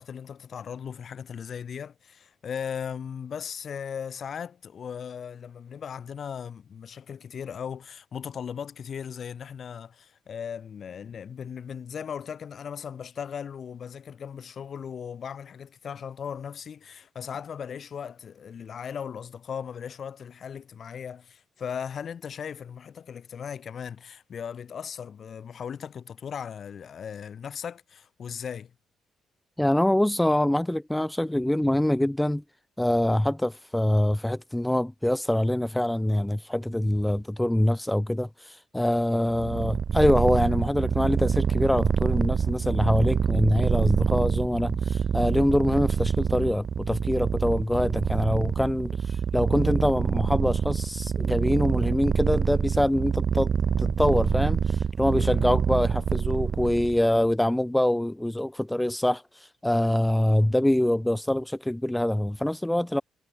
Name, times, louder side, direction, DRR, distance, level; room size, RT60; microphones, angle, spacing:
voice 1, 0.0-28.7 36.7-36.9 55.1-55.5, left 7 dB, 55° left, 1.6 m, -37 dB
voice 2, 29.6-32.4 32.8-53.5 53.8-63.0, left 1 dB, 5° left, 0.6 m, -25 dB
Purr, 39.3-57.0, right 7 dB, 50° right, 0.4 m, -26 dB
cardioid pair, 90°, 0 cm